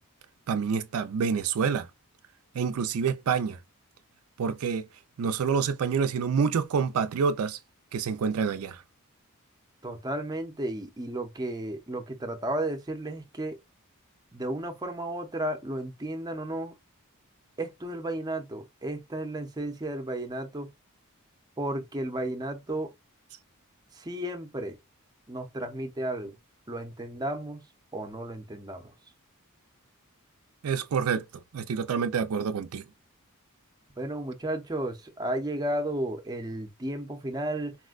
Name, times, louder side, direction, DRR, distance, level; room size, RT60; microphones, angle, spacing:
voice 1, 0.5-1.9 2.5-3.6 4.4-4.9 5.2-7.6 7.9-8.8 30.6-31.3 31.5-32.8, right 6 dB, 75° right, 0.4 m, -27 dB
voice 2, 9.8-13.6 14.3-16.7 17.6-20.7 21.6-22.9 23.9-24.8 25.3-26.3 26.7-27.6 27.9-28.9 34.0-37.8, right 1 dB, 20° right, 0.6 m, -33 dB
4.2 x 2.1 x 2.3 m
head